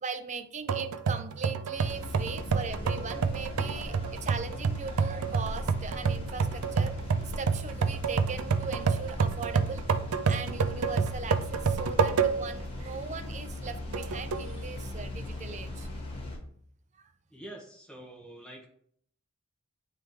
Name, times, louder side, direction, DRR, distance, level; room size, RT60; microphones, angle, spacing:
voice 1, 0.0-6.9 7.2-9.8 10.3-15.9 16.9-17.1, right 5 dB, 35° right, 9 dB, 0.5 m, -39 dB
sound 1, 0.7-12.6 13.1-13.2 13.9-14.5, right 5 dB, 90° right, 0.4 m, -29 dB
sound 2, 1.7-16.4, left 2 dB, 25° left, 1.4 m, -39 dB
voice 2, 17.3-18.7, right 1 dB, 5° left, -2 dB, 1.4 m, -46 dB
9.8 x 3.3 x 3.2 m, 0.63 s
head